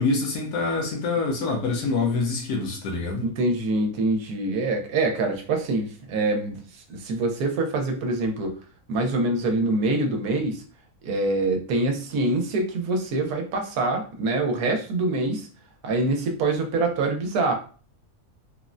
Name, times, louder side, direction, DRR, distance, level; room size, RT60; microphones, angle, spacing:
voice 1, 0.0-3.3, left 3 dB, 90° left, 1.2 m, -25 dB
voice 2, 3.2-8.6 8.9-10.6 11.0-15.5 15.8-17.5, right 2 dB, 85° right, 1.2 m, -25 dB
3.5 x 2.0 x 2.5 m
omnidirectional pair, 1.6 m